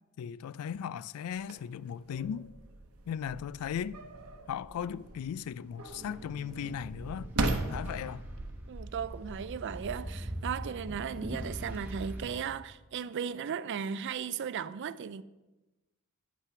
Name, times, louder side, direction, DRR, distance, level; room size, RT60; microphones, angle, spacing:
voice 1, 0.2-2.5 3.1-4.0 4.5-8.2, left 8 dB, 80° left, 0.3 m, -37 dB
sound 1, 1.3-12.3, right 2 dB, 85° right, 0.9 m, -40 dB
sound 2, 5.9-12.4, right 1 dB, 10° right, 1.4 m, -42 dB
voice 2, 8.7-15.2, right 7 dB, 55° right, 0.4 m, -36 dB
9.7 x 5.7 x 5.8 m
head